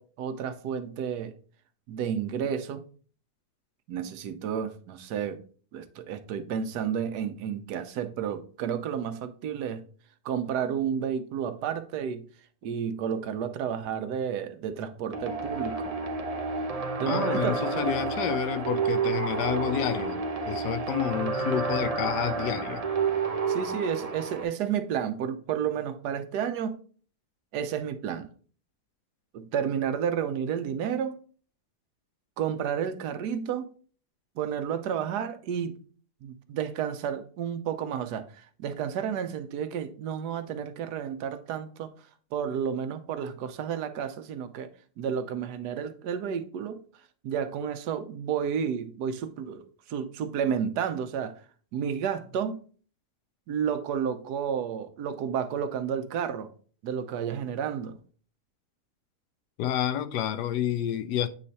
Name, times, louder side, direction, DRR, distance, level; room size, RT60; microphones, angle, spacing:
voice 1, 0.0-1.3 1.9-2.8 3.9-5.4 5.7-9.8 10.2-12.2 12.6-15.9 17.0-17.6 23.5-26.8 27.5-28.3 29.3-31.2 32.4-33.7 34.4-35.7 36.2-41.9 42.3-44.7 45.0-46.8 47.2-51.3 51.7-52.6 53.5-56.5 56.8-58.0, right 8 dB, 85° right, 1.3 m, -31 dB
sound 1, 15.1-24.4, right 4 dB, 50° right, 0.4 m, -30 dB
voice 2, 17.1-22.8 59.6-61.3, left 10 dB, 90° left, 1.2 m, -29 dB
8.3 x 3.2 x 4.1 m
omnidirectional pair, 1.7 m